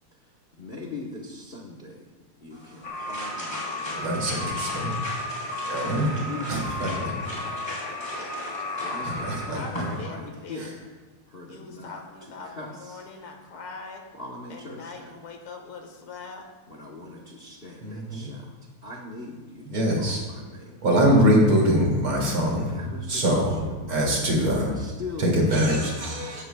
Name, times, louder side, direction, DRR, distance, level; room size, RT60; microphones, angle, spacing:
voice 1, 0.6-4.1 4.4-5.0 5.9-7.7 8.8-10.6 11.3-11.9 12.2-13.1 14.1-15.1 16.7-20.8 22.5-25.9, left 2 dB, 35° left, -1 dB, 0.9 m, -41 dB
sound 1, 2.5-10.1, equal, 10° left, 3.6 m, -39 dB
sound 2, 2.8-9.5, left 2 dB, 60° left, 1.9 m, -34 dB
voice 2, 3.9-4.9 5.6-6.1 6.5-7.3 9.0-9.6 10.6-10.7 17.8-18.3 19.7-20.2 20.8-22.8 23.1-23.6 23.9-24.7 25.2-26.4, equal, 70° right, -2 dB, 3.3 m, -23 dB
voice 3, 7.6-8.5 9.5-10.8 11.5-14.1 14.5-16.5, left 4 dB, 75° left, 3 dB, 2.3 m, -41 dB
16.5 x 12.5 x 2.3 m, 1.3 s
omnidirectional pair, 2.4 m